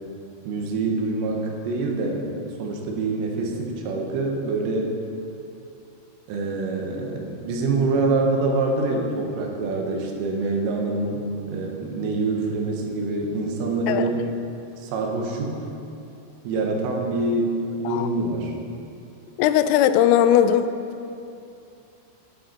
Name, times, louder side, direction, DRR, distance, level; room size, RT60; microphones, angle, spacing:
voice 1, 0.5-2.3 2.6-4.9 6.3-11.2 11.5-14.3 14.8-15.6 16.5-18.5, right 3 dB, 85° right, 1 dB, 3.7 m, -25 dB
voice 2, 19.4-20.6, left 10 dB, 85° left, 11 dB, 3.2 m, -18 dB
14.5 x 8.0 x 4.4 m, 2.6 s
omnidirectional pair, 5.8 m